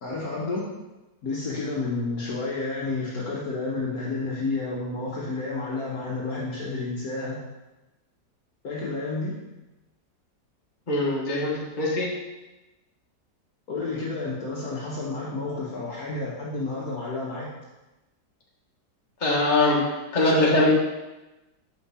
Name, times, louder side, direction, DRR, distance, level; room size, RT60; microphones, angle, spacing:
voice 1, 0.0-0.8 1.2-7.4 8.6-9.4 13.7-17.5, left 3 dB, 55° left, -4 dB, 1.5 m, -30 dB
voice 2, 10.9-12.1 19.2-20.7, left 2 dB, 25° left, -4 dB, 1.6 m, -22 dB
7.0 x 5.7 x 4.2 m, 1.0 s
omnidirectional pair, 1.9 m